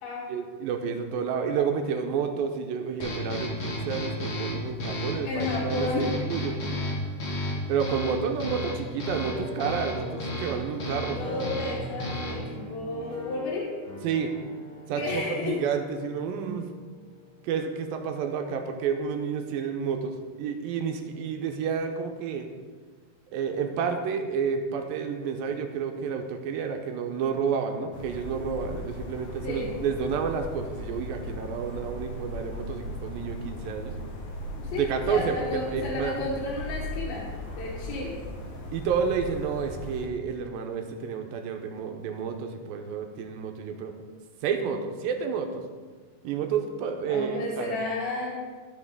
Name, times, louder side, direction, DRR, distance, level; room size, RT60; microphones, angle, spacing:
voice 1, 0.3-6.6 7.7-11.2 14.0-14.3 14.9-16.7 17.4-22.5 23.3-33.9 34.7-36.2 38.7-43.9 44.4-45.6 46.2-47.8, right 6 dB, 85° right, 4 dB, 2.4 m, -30 dB
sound 1, 3.0-12.6, left 1 dB, 45° left, 2.2 m, -33 dB
voice 2, 5.2-6.1 6.8-6.9 11.0-13.7 14.9-15.6 29.4-29.7 34.6-37.2 37.6-38.1 47.1-48.3, left 2 dB, 85° left, -6 dB, 3.1 m, -32 dB
sound 2, 8.4-18.3, left 2 dB, ahead, 1.5 m, -42 dB
sound 3, 27.9-40.1, left 1 dB, 65° left, 2.3 m, -38 dB
14.0 x 5.3 x 3.6 m, 1.5 s
omnidirectional pair, 4.2 m